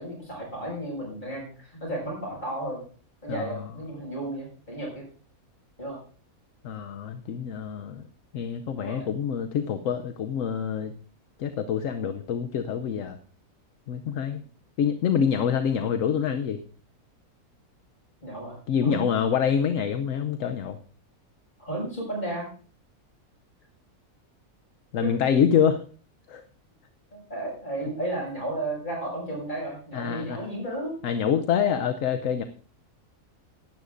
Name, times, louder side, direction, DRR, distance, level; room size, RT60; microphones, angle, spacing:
voice 1, 0.0-2.8 3.2-5.0 5.8-6.0 8.7-9.1 14.3-14.4 18.2-18.6 18.8-19.1 21.6-22.5 25.0-25.3 27.1-31.0, right 1 dB, 30° left, -2 dB, 6.4 m, -33 dB
voice 2, 3.3-3.6 6.6-8.0 8.3-10.9 11.4-13.2 13.9-14.4 14.8-16.6 18.7-20.8 24.9-25.8 26.3-26.4 29.9-30.4 31.0-32.4, left 8 dB, 65° left, 8 dB, 1.0 m, -26 dB
16.5 x 12.0 x 2.6 m, 0.42 s
omnidirectional pair, 1.6 m